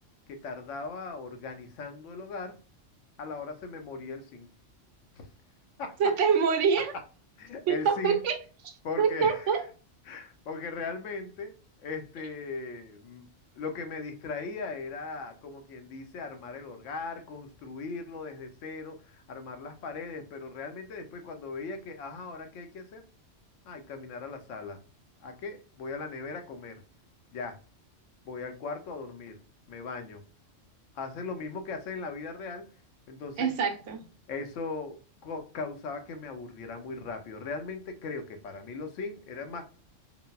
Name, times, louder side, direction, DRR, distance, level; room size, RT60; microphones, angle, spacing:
voice 1, 0.3-2.6 3.2-4.5 5.1-5.3 5.8-6.0 7.4-8.2 8.8-9.6 10.1-13.3 13.5-23.0 23.6-24.8 25.2-26.8 27.3-27.6 28.2-29.4 29.7-30.2 30.9-32.7 33.1-33.5 34.3-39.6, left 4 dB, 75° left, 1.0 m, -38 dB
voice 2, 6.0-6.9 7.7-8.4 8.6-9.6 33.4-34.0, right 6 dB, 75° right, 0.9 m, -25 dB
3.9 x 2.0 x 2.2 m
omnidirectional pair, 1.3 m